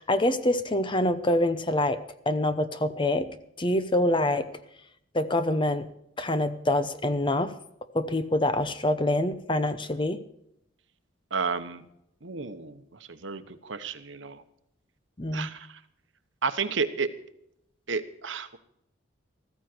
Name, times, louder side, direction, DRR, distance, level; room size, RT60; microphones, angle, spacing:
voice 1, 0.0-2.0 2.3-3.3 3.6-4.5 5.1-5.9 6.2-7.5 7.9-10.2 15.2-15.5, left 1 dB, 25° left, 11 dB, 0.8 m, -25 dB
voice 2, 11.3-11.8 12.2-14.4 15.3-15.8 16.4-17.1 17.9-18.6, right 5 dB, 65° right, 10 dB, 1.1 m, -32 dB
14.5 x 14.0 x 4.5 m, 0.77 s
head